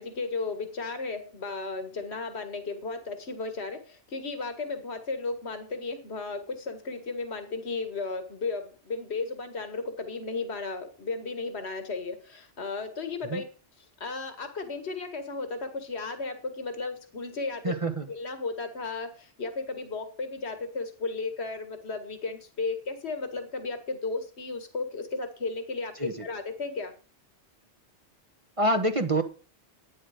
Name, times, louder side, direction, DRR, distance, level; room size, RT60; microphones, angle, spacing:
voice 1, 0.0-13.4 14.0-17.7 18.1-26.9, left 3 dB, 70° left, 7 dB, 2.0 m, -34 dB
voice 2, 17.6-18.1 26.0-26.1 28.6-29.2, right 1 dB, 30° right, 6 dB, 1.3 m, -26 dB
12.5 x 9.6 x 5.1 m, 0.36 s
omnidirectional pair, 1.1 m